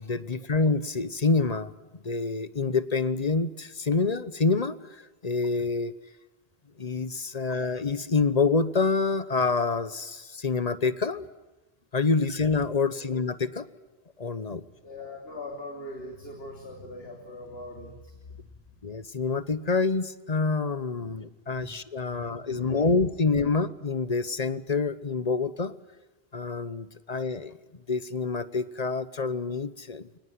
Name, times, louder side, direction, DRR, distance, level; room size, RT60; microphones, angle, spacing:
voice 1, 0.0-1.7 2.0-4.8 5.2-5.9 6.8-11.2 11.9-13.7 14.2-14.6 18.8-25.7 26.3-27.6 27.9-30.1, left 4 dB, 40° left, 15 dB, 1.0 m, -27 dB
voice 2, 14.6-18.5 20.9-21.2 21.5-21.7 22.0-22.9, left 1 dB, 75° left, 1 dB, 3.5 m, -42 dB
24.0 x 20.0 x 9.5 m, 1.1 s
omnidirectional pair, 1.0 m